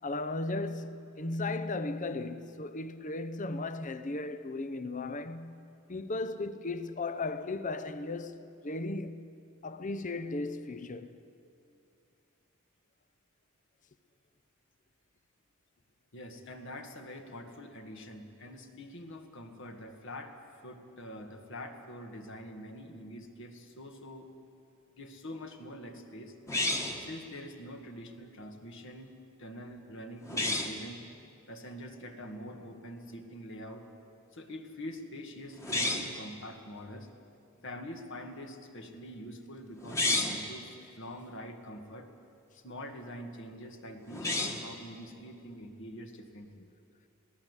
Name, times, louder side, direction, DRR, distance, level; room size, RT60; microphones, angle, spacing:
voice 1, 0.0-5.6 5.9-8.4 8.6-9.2 9.6-11.2, left 2 dB, 35° left, 0.7 m, -36 dB
voice 2, 16.1-20.4 20.6-24.3 25.0-26.3 27.0-29.1 29.4-31.0 31.5-33.8 34.3-37.1 37.6-42.1 42.5-46.7, equal, 60° left, 1.9 m, -45 dB
sound 1, 26.5-27.1 30.2-30.8 35.6-36.2 39.8-40.5 44.1-44.7, left 2 dB, 15° left, 1.5 m, -31 dB
22.0 x 17.0 x 8.2 m
head